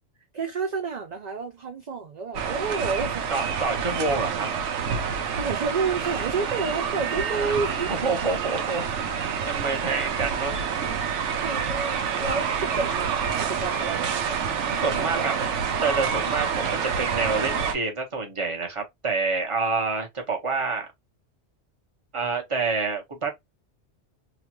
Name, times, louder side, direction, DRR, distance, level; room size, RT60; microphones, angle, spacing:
voice 1, 0.3-3.3 5.4-7.9 11.4-14.4 15.0-15.6, right 4 dB, 50° right, 0.5 m, -30 dB
sound 1, 2.3-17.7, right 6 dB, 90° right, 1.0 m, -28 dB
voice 2, 3.3-4.5 4.8-5.0 7.4-7.6 7.9-8.9 9.4-10.6 14.6-15.3 15.8-20.9 22.1-23.3, right 4 dB, 30° right, 0.9 m, -28 dB
3.0 x 2.3 x 2.9 m
omnidirectional pair, 1.2 m